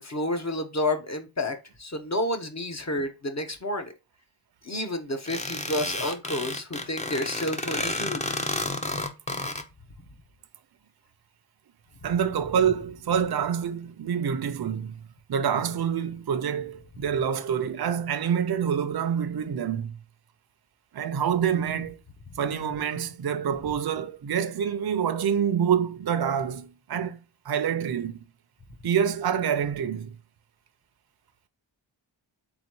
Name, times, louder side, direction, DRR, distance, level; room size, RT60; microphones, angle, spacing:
voice 1, 0.0-3.9 4.6-8.2, left 1 dB, 35° left, 0.9 m, -30 dB
sound 1, 5.3-9.6, left 2 dB, 15° left, 0.6 m, -31 dB
voice 2, 12.0-15.0 15.3-20.0 20.9-22.0 22.4-27.2 27.5-28.1 28.8-30.1, right 8 dB, 55° right, 0.6 m, -26 dB
4.0 x 3.9 x 3.0 m
wide cardioid pair, 95°, 44 cm